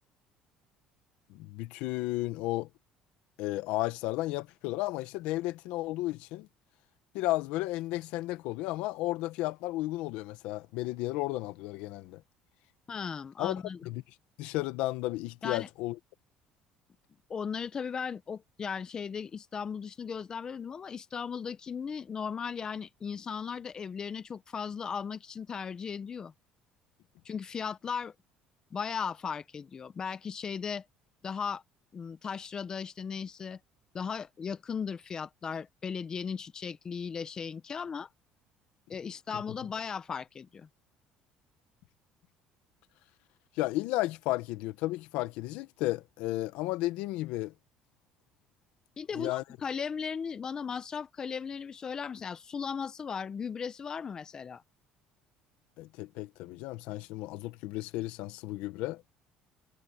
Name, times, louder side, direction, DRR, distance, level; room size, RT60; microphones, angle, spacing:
voice 1, 1.3-2.7 3.4-6.5 7.1-12.2 13.4-13.5 13.8-14.0 14.4-16.0 43.6-47.5 49.1-49.4 55.8-59.0, left 18 dB, 80° left, 1.5 m, -33 dB
voice 2, 12.9-13.8 15.4-15.7 17.3-26.3 27.2-28.1 28.7-30.8 31.2-31.6 31.9-33.6 33.9-38.1 38.9-40.7 49.0-54.6, left 6 dB, 35° left, 1.2 m, -37 dB
cardioid pair, 100°, 2 cm